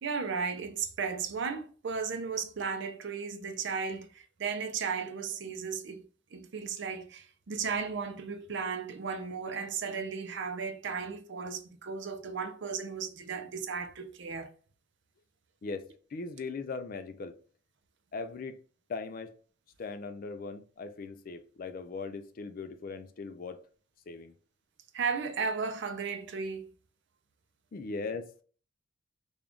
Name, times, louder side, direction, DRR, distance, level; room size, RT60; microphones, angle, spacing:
voice 1, 0.0-6.0 6.3-14.5 24.9-26.7, right 5 dB, 60° right, 0.5 m, -35 dB
voice 2, 15.6-17.4 18.1-18.6 18.9-19.3 19.8-23.6 24.1-24.3 27.7-28.3, left 4 dB, 45° left, 0.4 m, -39 dB
3.5 x 2.3 x 3.7 m
head